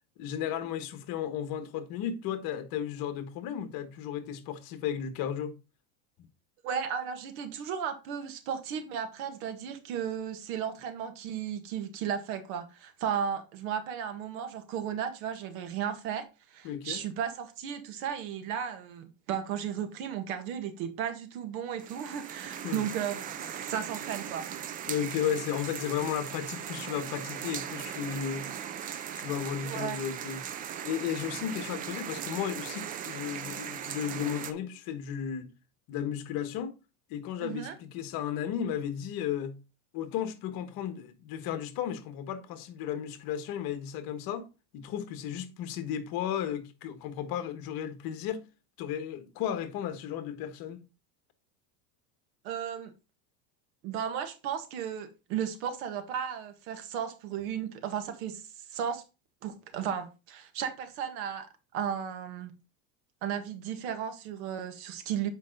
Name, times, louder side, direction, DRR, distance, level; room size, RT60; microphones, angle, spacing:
voice 1, 0.2-5.5 16.6-17.0 22.6-22.8 24.9-28.5 29.1-30.4 30.8-35.5 35.9-36.8 37.1-39.6 39.9-44.5 44.7-48.5 48.8-50.8, left 9 dB, 50° left, 1.3 m, -34 dB
voice 2, 6.6-24.5 29.6-30.0 37.4-37.7 52.4-52.9 53.8-58.4 58.7-59.0 59.4-61.5 61.7-62.5 63.2-65.3, right 8 dB, 65° right, 1.7 m, -35 dB
sound 1, 21.8-34.5, right 9 dB, 20° right, 0.3 m, -39 dB
7.5 x 5.0 x 3.8 m
supercardioid pair, 130°, 45 cm